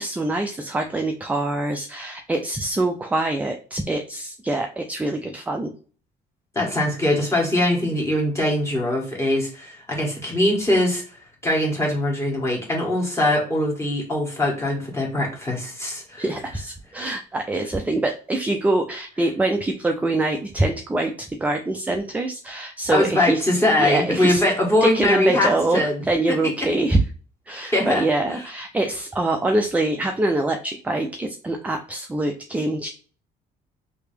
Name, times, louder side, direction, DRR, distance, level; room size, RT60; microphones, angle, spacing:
voice 1, 0.0-5.7 16.2-23.4 23.8-24.4 24.8-27.0 27.5-32.9, right 2 dB, 10° right, 4 dB, 0.4 m, -24 dB
voice 2, 6.5-11.0 11.4-16.2 22.9-26.0 26.3-26.4 27.7-28.0, left 1 dB, 15° left, -2 dB, 1.6 m, -22 dB
3.2 x 2.8 x 3.4 m, 0.39 s
cardioid pair, 110°, 17 cm